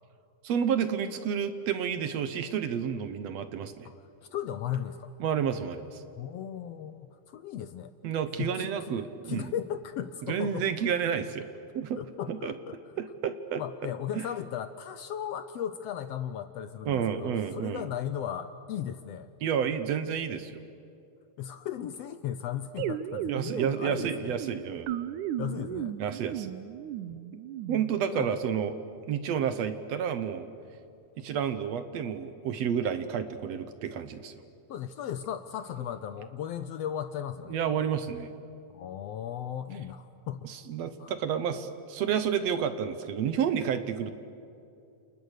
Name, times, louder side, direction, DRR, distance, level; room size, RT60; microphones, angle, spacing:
voice 1, 0.4-3.9 5.2-6.0 8.0-9.5 10.3-11.5 11.7-12.0 12.3-12.5 13.0-14.2 16.9-17.9 19.4-20.6 23.3-24.9 26.0-26.5 27.7-28.8 29.1-30.5 31.2-34.3 37.5-38.3 40.4-44.1, right 8 dB, 65° right, 10 dB, 2.0 m, -30 dB
voice 2, 4.3-5.1 6.2-7.9 8.4-8.9 9.2-10.7 12.0-12.8 13.6-19.3 21.4-24.4 25.4-26.0 27.1-27.2 28.1-28.3 34.7-37.8 38.7-40.5 41.0-41.1, left 9 dB, 70° left, 11 dB, 1.6 m, -36 dB
sound 1, 22.8-28.2, right 10 dB, 85° right, 2.2 m, -36 dB
29.5 x 28.5 x 6.6 m, 2.6 s
omnidirectional pair, 3.4 m